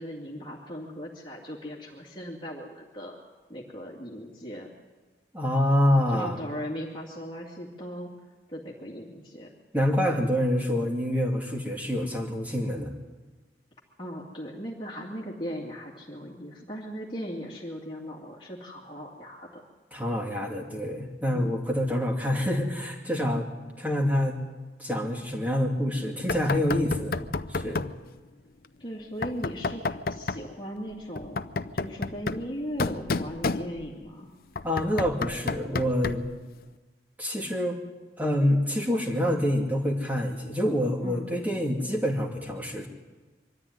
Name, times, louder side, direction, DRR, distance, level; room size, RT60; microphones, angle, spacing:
voice 1, 0.0-3.2 3.5-4.7 6.1-8.1 8.5-9.5 14.0-19.6 21.3-21.6 28.8-31.4 31.7-34.3 41.0-41.3, equal, 25° left, -2 dB, 2.4 m, -38 dB
voice 2, 5.3-6.4 9.7-12.9 19.9-23.5 23.8-24.4 24.8-27.1 27.5-27.9 34.6-36.3 37.2-37.8 38.2-42.9, left 1 dB, 10° right, 1 dB, 2.6 m, -26 dB
Knock, 26.3-28.0 29.2-30.5 31.2-34.1 34.6-36.4, left 3 dB, 55° left, 0.6 m, -31 dB
24.0 x 13.5 x 9.8 m, 1.3 s
head